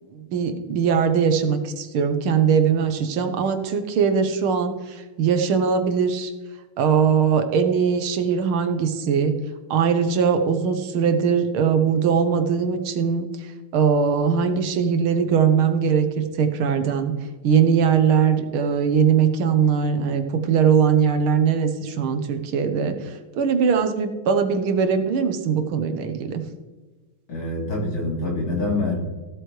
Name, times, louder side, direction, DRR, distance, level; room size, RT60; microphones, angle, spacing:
voice 1, 0.1-6.3 6.8-9.3 9.7-17.1 17.4-26.4, right 6 dB, 80° right, 7 dB, 1.9 m, -21 dB
voice 2, 27.3-29.0, left 2 dB, 70° left, -2 dB, 3.8 m, -25 dB
15.0 x 7.9 x 3.2 m, 1.3 s
omnidirectional pair, 2.4 m